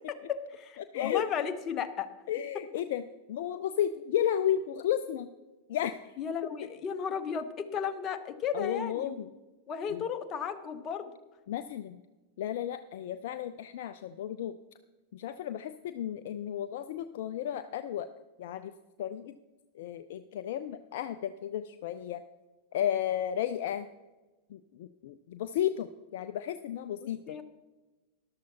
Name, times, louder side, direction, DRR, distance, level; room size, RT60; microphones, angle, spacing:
voice 1, 0.1-2.1 6.2-9.2 9.7-11.1 27.0-27.4, left 7 dB, 30° left, 8 dB, 0.9 m, -34 dB
voice 2, 2.3-3.0 3.3-5.3 5.7-6.0 8.5-9.2 9.9-10.1 11.5-12.0 12.4-14.6 15.1-18.1 18.4-18.7 19.0-19.4 19.7-22.2 22.7-23.9 24.5-27.4, left 10 dB, 55° left, 11 dB, 0.4 m, -33 dB
13.5 x 11.5 x 2.8 m, 1.2 s
figure-of-eight pair, 90°, 0 cm